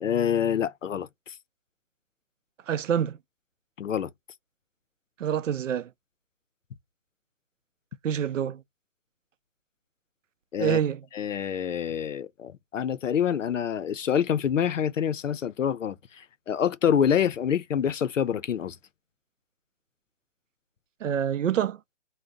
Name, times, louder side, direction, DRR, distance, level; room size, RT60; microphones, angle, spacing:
voice 1, 0.0-1.3 3.8-4.1 10.5-10.8 11.1-18.8, left 8 dB, 85° left, 0.6 m, -26 dB
voice 2, 2.7-3.2 5.2-5.9 8.0-8.6 10.6-11.0 21.0-21.8, right 9 dB, 85° right, 0.5 m, -26 dB
2.7 x 2.1 x 3.5 m
hypercardioid pair, 160°, 37 cm